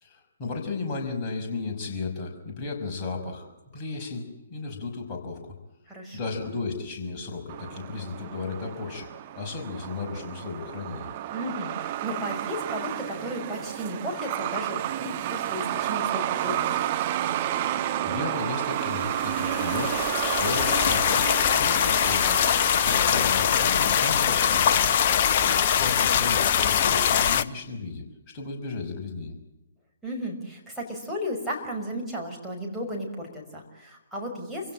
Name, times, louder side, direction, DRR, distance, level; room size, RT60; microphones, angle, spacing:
voice 1, 0.0-3.5 3.7-5.5 6.1-9.1 9.3-11.1 17.8-21.3 21.5-22.4 22.8-25.1 25.4-28.0 28.3-29.3, left 4 dB, 25° left, 0 dB, 5.6 m, -34 dB
voice 2, 5.9-6.5 11.3-16.9 25.4-25.8 30.0-34.7, equal, ahead, -3 dB, 5.8 m, -34 dB
Truck, 7.5-24.9, right 12 dB, 35° right, 1.4 m, -31 dB
sound 1, 19.1-27.4, left 8 dB, 40° left, 0.9 m, -23 dB
28.0 x 16.5 x 8.8 m, 1.0 s
figure-of-eight pair, 125°, 0 cm